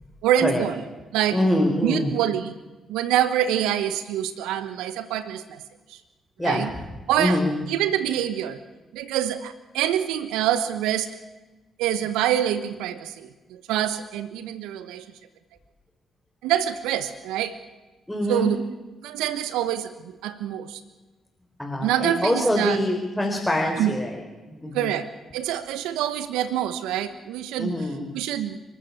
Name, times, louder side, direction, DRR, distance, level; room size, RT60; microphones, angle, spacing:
voice 1, 0.2-0.8 1.1-1.4 1.8-2.6 2.9-5.6 5.9-6.0 6.4-6.7 7.1-7.4 7.7-8.6 8.9-11.1 11.8-15.1 16.4-17.6 18.3-18.6 19.0-20.8 21.8-22.8 23.8-24.0 24.7-27.9 28.1-28.6, right 11 dB, 75° right, 13 dB, 1.1 m, -26 dB
voice 2, 1.3-2.1 6.4-6.6 7.2-7.6 18.1-18.5 21.6-24.2 24.5-24.9 27.6-28.1, left 1 dB, 5° left, 0 dB, 4.8 m, -24 dB
30.0 x 13.0 x 8.7 m, 1.2 s
hypercardioid pair, 45°, 0 cm